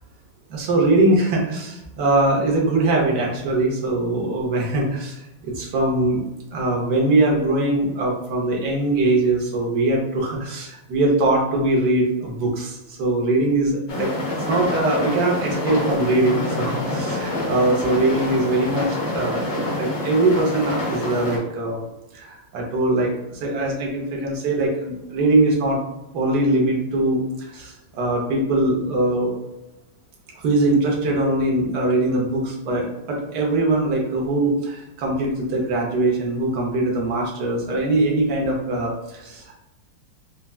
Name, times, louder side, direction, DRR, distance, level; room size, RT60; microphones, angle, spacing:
voice 1, 0.5-6.2 6.5-21.8 22.1-25.8 26.1-29.3 30.3-39.5, right 2 dB, 60° right, -2 dB, 1.3 m, -22 dB
sound 1, 13.9-21.4, left 1 dB, 80° left, 2.1 m, -27 dB
5.4 x 2.3 x 2.3 m, 0.94 s
omnidirectional pair, 2.3 m